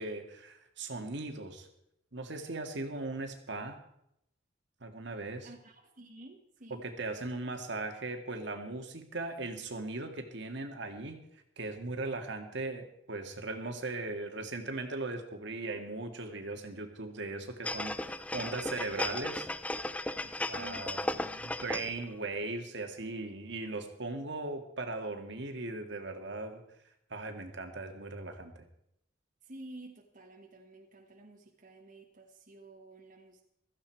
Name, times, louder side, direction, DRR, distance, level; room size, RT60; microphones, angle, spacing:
voice 1, 0.0-1.7 2.1-3.8 4.8-5.5 6.7-11.2 11.6-19.5 20.2-26.6 27.1-28.6, right 2 dB, 65° right, 5 dB, 1.9 m, -38 dB
voice 2, 5.4-6.9 20.5-21.1 29.4-33.4, right 1 dB, 45° right, 1 dB, 1.4 m, -51 dB
sound 1, 17.6-22.0 22.4-22.5, left 1 dB, 5° left, 0.5 m, -36 dB
16.0 x 14.0 x 4.6 m, 0.76 s
head